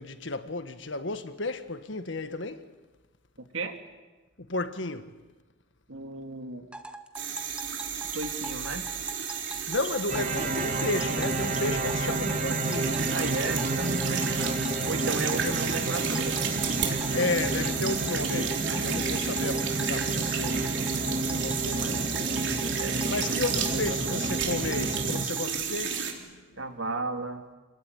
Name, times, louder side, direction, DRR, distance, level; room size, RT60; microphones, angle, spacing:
voice 1, 0.0-2.7 4.4-5.2 9.5-13.0 15.4-15.5 17.1-22.1 23.1-26.6, left 2 dB, 65° left, 1.6 m, -33 dB
voice 2, 3.4-3.7 5.9-6.7 8.1-8.9 13.1-16.4 22.8-24.2 26.6-27.4, right 3 dB, 85° right, 2.9 m, -35 dB
sound 1, 6.7-25.5, right 2 dB, 5° right, 1.3 m, -41 dB
sound 2, 7.1-26.1, right 7 dB, 65° right, 4.0 m, -32 dB
sound 3, 10.1-25.3, right 2 dB, 35° right, 1.9 m, -30 dB
28.5 x 20.5 x 9.8 m
head